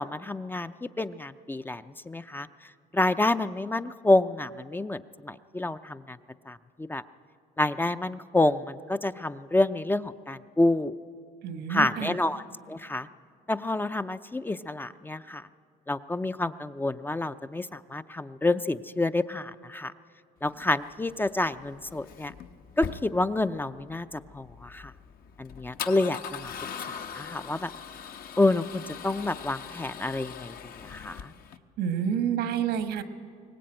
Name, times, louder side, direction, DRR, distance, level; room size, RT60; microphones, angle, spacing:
voice 1, 0.0-2.5 2.9-6.2 6.5-7.0 7.6-10.9 11.7-13.1 13.5-15.5 15.9-19.9 20.4-22.3 22.8-24.9 25.4-26.5 27.1-27.7 28.4-30.5 30.8-31.3, left 2 dB, 10° left, 11 dB, 0.5 m, -28 dB
voice 2, 11.4-12.1 31.8-33.0, right 8 dB, 80° right, 9 dB, 1.5 m, -28 dB
Male speech man speaking / Car / Engine starting, 20.5-31.6, left 7 dB, 60° left, 1.0 m, -41 dB
22.0 x 19.0 x 8.9 m, 2.2 s
cardioid pair, 110°, 17 cm